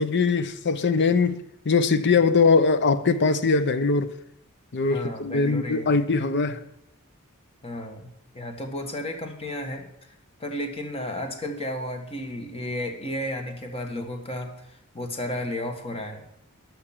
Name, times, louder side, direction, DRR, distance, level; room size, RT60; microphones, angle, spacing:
voice 1, 0.0-4.1 4.7-6.6, left 4 dB, 55° left, 0.7 m, -21 dB
voice 2, 4.9-6.0 7.6-8.1 8.3-9.9 10.4-16.2, left 1 dB, 25° left, 1.5 m, -33 dB
11.5 x 6.2 x 7.2 m
head